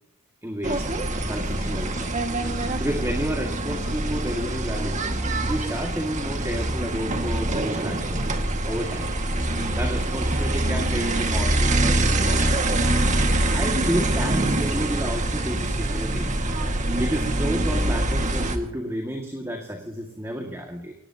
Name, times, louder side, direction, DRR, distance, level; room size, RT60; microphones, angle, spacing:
voice 1, 0.4-0.9 1.3-2.2 2.8-5.0 5.5-8.3 8.7-9.1 9.8-12.6 13.5-16.3 17.0-21.0, equal, 15° right, 1 dB, 2.0 m, -31 dB
sound 1, 0.6-18.6, right 1 dB, 35° right, 1.8 m, -24 dB
24.5 x 18.5 x 2.9 m, 0.86 s
head